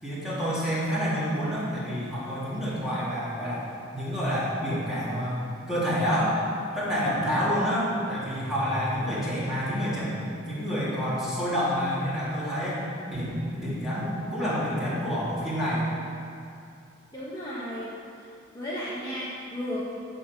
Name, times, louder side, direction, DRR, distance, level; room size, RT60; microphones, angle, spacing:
voice 1, 0.0-3.7 3.9-6.4 6.7-10.1 10.4-15.9, equal, ahead, -10 dB, 3.4 m, -28 dB
voice 2, 17.1-17.9 18.2-18.3 18.5-19.9, equal, 20° left, -8 dB, 1.8 m, -34 dB
16.0 x 5.9 x 7.6 m, 2.5 s
head